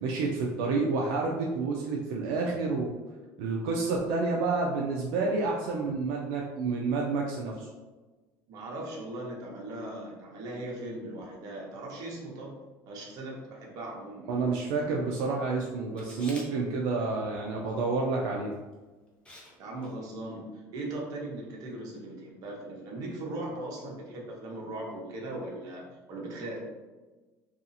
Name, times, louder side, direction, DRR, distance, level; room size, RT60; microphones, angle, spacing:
voice 1, 0.0-2.9 3.4-7.7 14.3-18.5, right 3 dB, 85° right, -1 dB, 0.4 m, -29 dB
voice 2, 8.5-12.6 12.9-14.3 19.6-26.6, right 1 dB, 55° right, -2 dB, 0.8 m, -39 dB
Camera, 16.0-16.5 18.5-18.7 19.3-19.5 19.8-19.9, left 1 dB, 15° left, 0.6 m, -46 dB
2.6 x 2.4 x 2.6 m, 1.2 s
cardioid pair, 130°, 8 cm